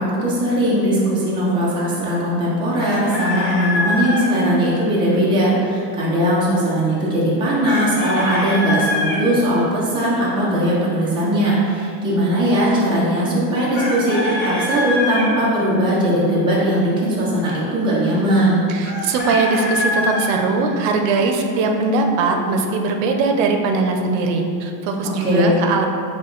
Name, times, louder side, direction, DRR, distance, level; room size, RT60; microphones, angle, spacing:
voice 1, 0.0-18.6 25.2-25.6, equal, 10° right, -8 dB, 0.5 m, -19 dB
Chicken rooster, 2.8-4.3 7.6-9.2 13.7-15.3 18.8-20.3, left 2 dB, 20° left, 0.9 m, -24 dB
voice 2, 18.7-25.9, right 3 dB, 85° right, 4 dB, 0.7 m, -20 dB
6.1 x 2.2 x 3.8 m, 2.5 s
cardioid pair, 175°, 49 cm